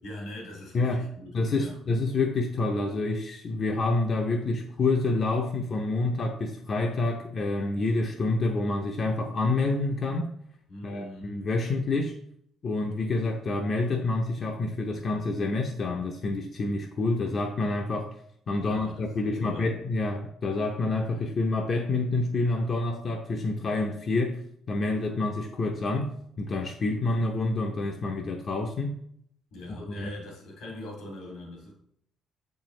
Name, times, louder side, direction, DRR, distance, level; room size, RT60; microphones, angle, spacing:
voice 1, 0.0-1.8 10.7-11.4 18.6-19.7 29.5-31.7, left 1 dB, 85° left, 0 dB, 2.4 m, -42 dB
voice 2, 1.3-10.3 10.8-12.2 12.6-18.1 18.5-24.4 24.7-29.0 29.7-30.1, left 2 dB, 45° left, 2 dB, 0.6 m, -28 dB
6.9 x 4.5 x 3.1 m, 0.70 s
cardioid pair, 100°, 0 cm